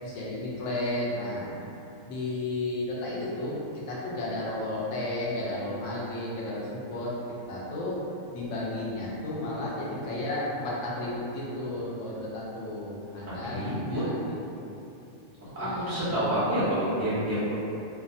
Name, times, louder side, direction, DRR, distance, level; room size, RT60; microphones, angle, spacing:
voice 1, 0.0-1.6 2.0-7.1 7.5-8.0 8.3-14.3 15.6-16.3, left 1 dB, 75° left, -6 dB, 0.9 m, -33 dB
voice 2, 13.4-14.0 15.6-17.5, equal, 15° right, -11 dB, 0.6 m, -28 dB
2.5 x 2.2 x 2.6 m, 2.8 s
omnidirectional pair, 1.3 m